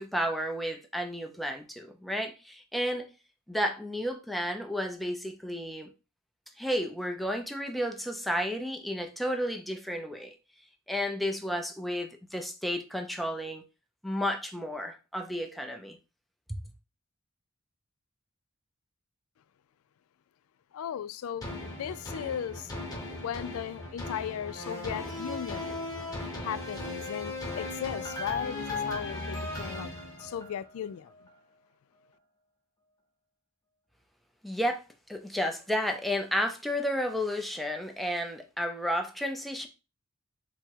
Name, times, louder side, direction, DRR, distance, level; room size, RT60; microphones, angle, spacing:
voice 1, 0.0-3.1 3.5-5.9 6.6-10.4 10.9-13.6 14.0-16.0 16.5-16.6 34.4-39.7, equal, ahead, 0.5 m, -32 dB
voice 2, 20.7-22.7 23.2-25.7 26.4-29.9 30.2-31.1, left 8 dB, 75° left, 0.3 m, -37 dB
sound 1, 21.4-30.8 31.3-31.4, left 2 dB, 15° left, 1.0 m, -37 dB
3.4 x 3.0 x 4.5 m
head